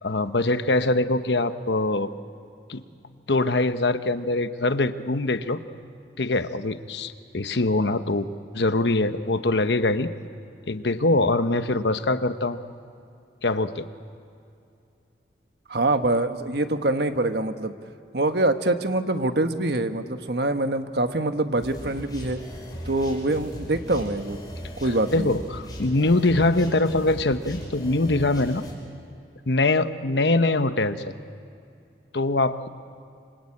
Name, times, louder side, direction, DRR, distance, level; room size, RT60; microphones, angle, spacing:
voice 1, 0.0-2.1 2.7-2.8 3.3-5.6 6.2-8.3 8.5-10.1 10.7-12.6 13.4-13.9 25.1-28.6 29.5-31.1 32.1-32.7, left 2 dB, 75° left, 10 dB, 1.1 m, -23 dB
voice 2, 15.7-17.7 18.1-22.4 22.8-24.4 24.8-25.3, right 2 dB, 70° right, 7 dB, 1.4 m, -24 dB
sound 1, 21.6-28.7, equal, 20° left, 5.5 m, -38 dB
26.5 x 26.0 x 8.6 m, 2.5 s
head